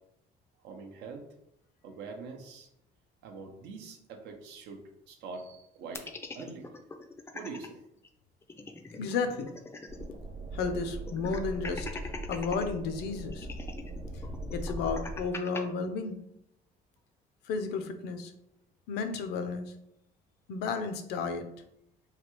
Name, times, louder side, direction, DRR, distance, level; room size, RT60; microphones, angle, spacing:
voice 1, 0.6-1.2 1.8-2.7 3.2-4.8 5.1-6.7 7.3-7.8, right 4 dB, 85° right, 3 dB, 0.6 m, -44 dB
sound 1, 5.9-7.7 8.0-8.1 8.4-10.2 10.5-10.6 11.1-12.7 13.3-15.6, left 3 dB, 15° left, 0.3 m, -42 dB
voice 2, 9.0-9.5 10.5-11.9 12.3-13.5 14.1-14.2 14.5-16.2 17.4-18.3 18.9-19.7 20.5-21.5, left 4 dB, 75° left, 8 dB, 0.5 m, -32 dB
sound 2, 9.9-15.2, right 1 dB, 40° right, 0.7 m, -40 dB
3.2 x 2.3 x 2.9 m, 0.78 s
cardioid pair, 110°, 17 cm